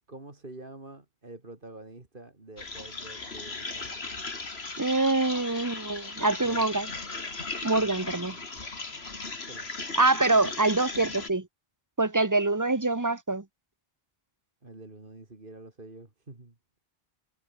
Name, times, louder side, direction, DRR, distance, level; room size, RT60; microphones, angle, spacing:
voice 1, 0.1-4.1 6.4-6.6 7.8-9.0 9.4-10.0 14.6-16.5, right 2 dB, 55° right, 3.3 m, -48 dB
sound 1, 2.6-11.3, left 3 dB, 80° left, 2.8 m, -37 dB
voice 2, 4.8-6.9 7.6-8.4 9.9-11.5 12.0-13.4, right 2 dB, 20° right, 1.2 m, -25 dB
omnidirectional pair, 1.1 m